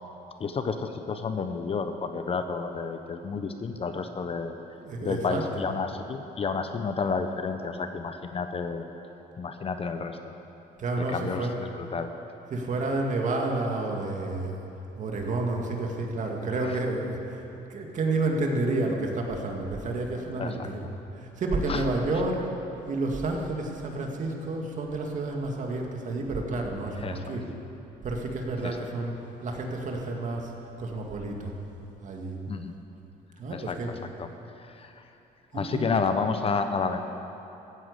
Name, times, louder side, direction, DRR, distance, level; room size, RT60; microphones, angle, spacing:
voice 1, 0.4-4.5 5.0-8.9 9.4-10.3 11.0-12.1 16.6-16.8 20.4-20.9 21.7-21.8 26.9-27.4 28.6-28.9 32.5-32.7 33.5-34.3 34.5-35.2 35.5-37.0, left 5 dB, 35° left, 7 dB, 0.9 m, -31 dB
voice 2, 4.8-5.7 10.8-11.6 12.5-14.7 15.0-17.4 17.7-20.9 21.2-22.5 22.9-27.5 28.0-29.2 29.4-30.5 30.8-31.5 32.0-32.4 33.4-33.9 35.5-36.0, right 2 dB, 45° right, 1 dB, 2.2 m, -30 dB
15.0 x 9.1 x 8.3 m, 3.0 s
cardioid pair, 110°, 17 cm